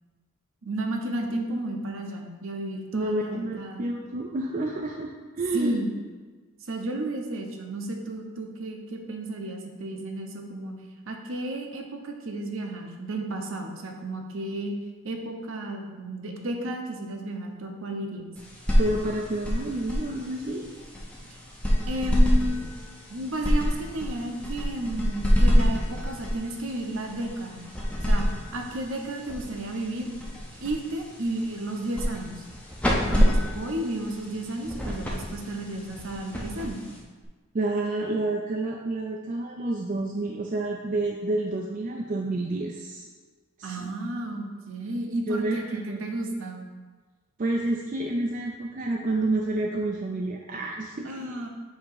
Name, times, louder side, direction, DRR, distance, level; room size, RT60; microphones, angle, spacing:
voice 1, 0.6-3.9 5.5-5.9 6.6-10.8 11.1-14.7 15.0-18.3 21.9-22.7 23.1-27.7 28.0-30.1 30.6-32.5 33.0-36.9 43.6-46.7 51.0-51.5, right 1 dB, 65° right, 2 dB, 0.8 m, -33 dB
voice 2, 2.9-5.8 18.8-20.6 37.5-43.1 43.6-43.9 45.3-46.0 47.4-51.5, right 2 dB, 35° right, 0 dB, 0.4 m, -29 dB
sound 1, 18.4-37.2, equal, 5° left, 0.6 m, -27 dB
7.4 x 2.9 x 4.6 m, 1.4 s
head